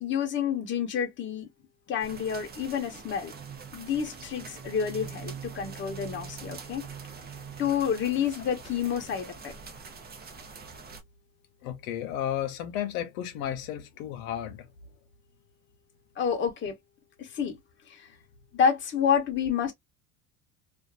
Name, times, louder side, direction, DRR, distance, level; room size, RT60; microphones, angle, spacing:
voice 1, 0.0-1.5 1.9-3.3 3.7-6.8 7.6-9.5 16.2-16.8 17.2-17.6 17.9-18.1 18.5-19.7, left 7 dB, 30° left, 1.0 m, -29 dB
sound 1, 2.0-11.0, right 6 dB, 25° right, 0.7 m, -43 dB
voice 2, 11.6-14.7, left 11 dB, 85° left, 0.9 m, -33 dB
2.6 x 2.4 x 2.3 m
cardioid pair, 130°, 40 cm